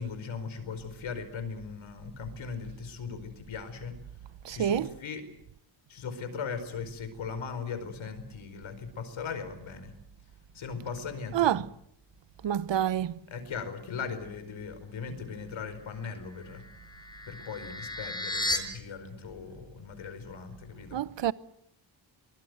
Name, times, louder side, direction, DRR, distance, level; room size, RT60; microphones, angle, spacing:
voice 1, 0.0-3.9 4.5-5.2 5.9-9.9 10.5-11.6 13.3-16.6 17.3-21.0, left 5 dB, 75° left, 4.9 m, -39 dB
voice 2, 4.4-4.9 11.3-11.6 12.4-13.1 20.9-21.3, right 10 dB, 65° right, 1.0 m, -27 dB
sound 1, 16.3-18.6, left 2 dB, 10° left, 6.0 m, -34 dB
24.0 x 23.0 x 8.1 m
cardioid pair, 110°, 47 cm